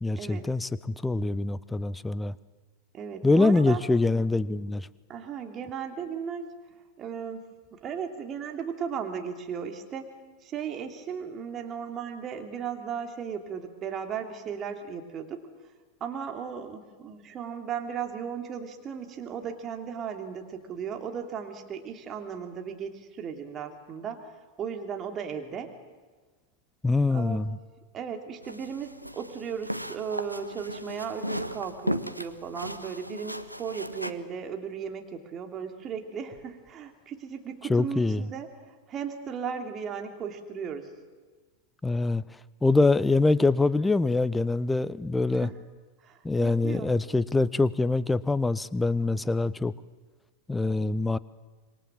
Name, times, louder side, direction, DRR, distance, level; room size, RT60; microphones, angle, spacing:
voice 1, 0.0-2.3 3.2-4.9 26.8-27.6 37.7-38.2 41.8-42.2 42.6-45.5 46.2-49.7 50.5-51.2, left 3 dB, 10° left, 20 dB, 0.7 m, -24 dB
voice 2, 2.9-3.8 5.1-6.5 7.0-10.1 10.4-15.4 16.0-24.2 24.6-25.7 27.1-27.4 27.9-38.5 38.9-40.9 45.4-45.5 46.0-46.9, right 7 dB, 30° right, 4 dB, 2.9 m, -36 dB
sound 1, 28.4-34.1, equal, 90° right, 0.9 m, -36 dB
26.0 x 23.0 x 7.6 m, 1.4 s
figure-of-eight pair, 90°, 0 cm